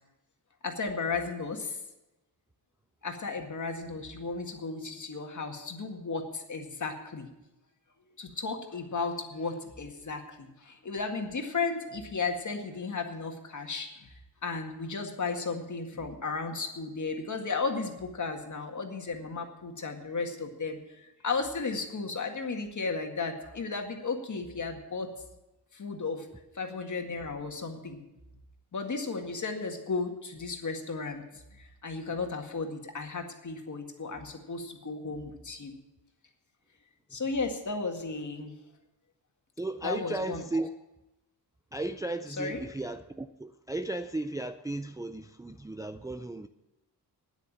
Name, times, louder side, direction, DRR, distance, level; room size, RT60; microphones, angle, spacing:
voice 1, 0.6-1.8 3.0-7.3 8.2-14.1 14.4-20.8 21.2-25.1 25.7-26.3 26.6-28.0 28.7-31.2 31.6-35.7 37.1-38.5 39.8-40.4 42.4-42.6, left 4 dB, 45° left, 2.0 m, -34 dB
voice 2, 39.6-40.7 41.7-46.5, right 2 dB, 10° right, 0.4 m, -35 dB
9.5 x 9.0 x 8.6 m
cardioid pair, 100°, 41 cm